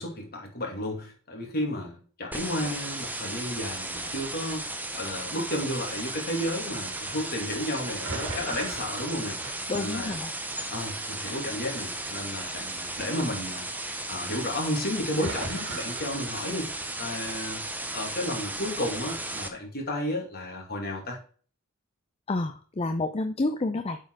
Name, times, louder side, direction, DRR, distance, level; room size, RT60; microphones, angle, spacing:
voice 1, 0.0-4.7 4.9-9.4 9.7-10.2 10.7-13.7 14.1-16.7 17.0-17.6 17.9-21.2, left 1 dB, 50° left, 0 dB, 2.5 m, -32 dB
sound 1, 2.3-19.5, right 2 dB, 10° right, 0.8 m, -35 dB
sound 2, 6.7-7.0 7.9-10.3 10.6-11.2 11.6-13.9 14.2-14.7 15.0-16.4, right 3 dB, 65° right, 2.1 m, -39 dB
voice 2, 9.7-10.3 22.3-24.0, left 2 dB, 30° left, 7 dB, 0.5 m, -29 dB
8.0 x 4.5 x 4.7 m, 0.42 s
head